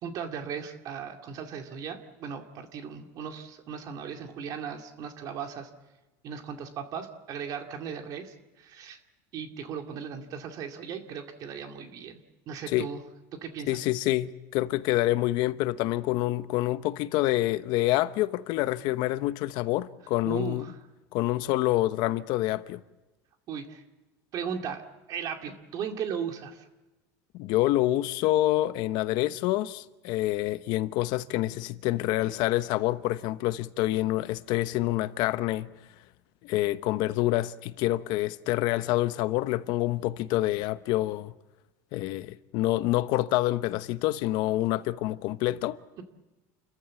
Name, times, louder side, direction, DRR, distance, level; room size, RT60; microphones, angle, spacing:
voice 1, 0.0-5.7 6.2-9.0 9.3-12.2 12.5-13.0 13.4-13.8 20.3-20.8 23.5-23.8 24.3-24.8 25.1-26.7, right 7 dB, 50° right, 2.4 m, -37 dB
voice 2, 13.7-20.7 21.1-22.8 27.3-35.7 36.4-41.3 41.9-45.8, left 16 dB, 60° left, 0.9 m, -27 dB
29.5 x 14.5 x 8.4 m
supercardioid pair, 130°, 8 cm